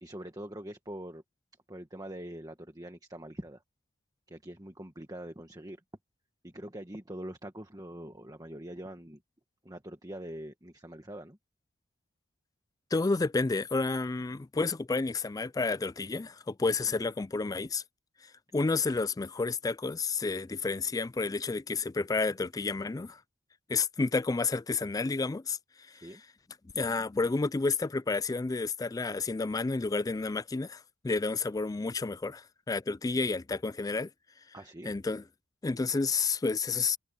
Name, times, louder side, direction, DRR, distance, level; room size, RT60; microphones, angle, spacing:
voice 1, 0.0-1.2 1.7-3.6 4.3-5.8 6.4-9.2 9.6-11.4 26.0-26.2 34.5-34.9, right 1 dB, 20° right, 1.7 m, -43 dB
voice 2, 12.9-17.8 18.5-23.2 23.7-25.6 25.9-26.1 26.7-34.1 34.9-35.2 35.6-37.0, left 3 dB, 15° left, 0.3 m, -30 dB
head